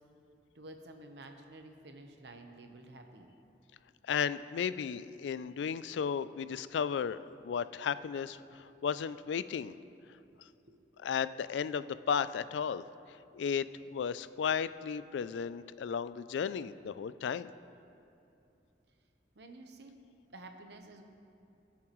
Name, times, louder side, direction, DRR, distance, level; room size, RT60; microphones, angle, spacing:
voice 1, 0.5-3.3 8.5-8.7 10.3-10.4 10.7-10.8 19.3-20.0 20.3-21.0, right 2 dB, 65° right, 4 dB, 1.0 m, -51 dB
voice 2, 4.1-9.7 11.0-12.8 13.3-13.7 13.9-17.5, left 7 dB, 80° left, 15 dB, 0.3 m, -34 dB
20.0 x 7.2 x 3.1 m, 2.7 s
head